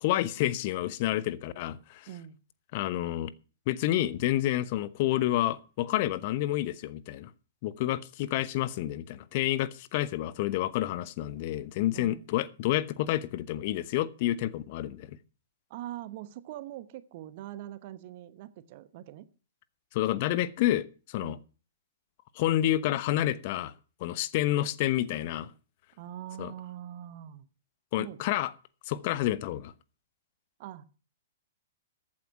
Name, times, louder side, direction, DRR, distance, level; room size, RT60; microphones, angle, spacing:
voice 1, 0.0-2.1 2.7-3.3 3.7-7.3 7.6-15.2 19.9-21.4 22.4-23.7 24.0-25.5 26.4-26.5 27.9-28.5 28.9-29.7, left 14 dB, 45° left, 1.0 m, -29 dB
voice 2, 2.1-2.4 11.9-12.3 15.7-19.3 21.2-21.4 26.0-27.4 28.0-28.2 30.6-30.8, right 12 dB, 45° right, 1.1 m, -43 dB
14.0 x 8.8 x 5.8 m
figure-of-eight pair, 110°, 0 cm